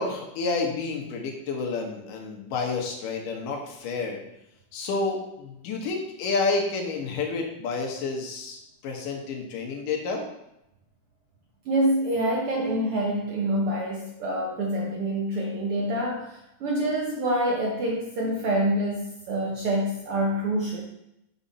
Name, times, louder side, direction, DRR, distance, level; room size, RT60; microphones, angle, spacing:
voice 1, 0.0-4.2 4.7-8.6 8.8-10.2, left 3 dB, 85° left, 1 dB, 2.9 m, -29 dB
voice 2, 11.6-20.8, right 1 dB, 65° right, -2 dB, 1.4 m, -26 dB
8.0 x 5.6 x 4.2 m, 0.84 s
omnidirectional pair, 3.7 m